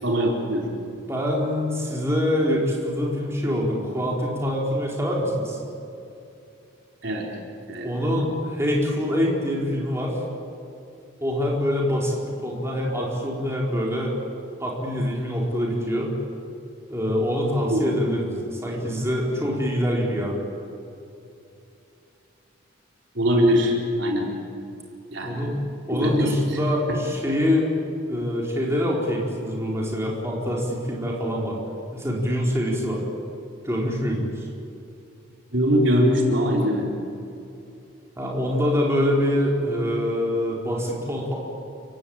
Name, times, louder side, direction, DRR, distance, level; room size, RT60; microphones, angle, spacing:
voice 1, 0.0-0.7 7.0-7.3 7.7-7.9 17.7-17.8 23.2-24.3 25.1-25.4 25.9-26.3 35.5-36.9, equal, 60° right, 0 dB, 4.2 m, -21 dB
voice 2, 1.1-5.6 7.8-10.2 11.2-14.1 14.6-16.1 16.9-20.5 25.2-25.6 25.9-27.7 28.1-31.6 31.9-33.0 33.6-34.5 38.2-41.4, equal, 15° right, -3 dB, 4.6 m, -25 dB
30.0 x 17.5 x 8.8 m, 2.7 s
head